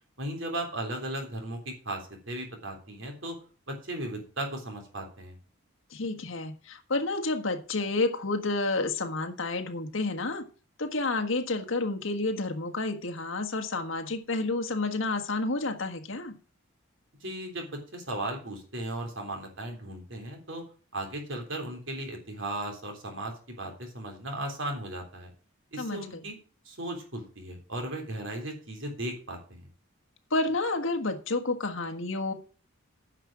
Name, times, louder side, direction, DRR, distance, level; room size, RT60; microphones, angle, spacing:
voice 1, 0.2-3.4 3.7-5.4 17.2-20.6 20.9-25.3 25.7-26.4 26.7-29.7, right 1 dB, 65° right, 2 dB, 3.5 m, -36 dB
voice 2, 5.9-10.4 10.8-16.3 25.8-26.2 30.3-32.3, left 2 dB, 70° left, 4 dB, 1.6 m, -30 dB
9.9 x 6.1 x 7.4 m, 0.38 s
head